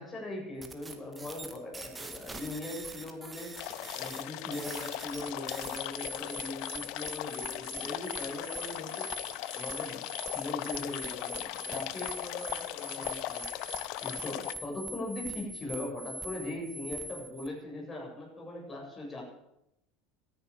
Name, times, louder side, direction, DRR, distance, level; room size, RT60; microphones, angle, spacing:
voice 1, 0.0-3.6 4.0-9.1 9.5-10.0 10.3-13.7 14.0-19.2, left 1 dB, 25° left, -1 dB, 7.6 m, -40 dB
sound 1, 0.6-17.5, right 1 dB, 15° right, 1.9 m, -43 dB
sound 2, 3.6-14.5, left 15 dB, 65° left, 0.8 m, -38 dB
13.5 x 10.5 x 8.5 m, 0.83 s
supercardioid pair, 110°, 0 cm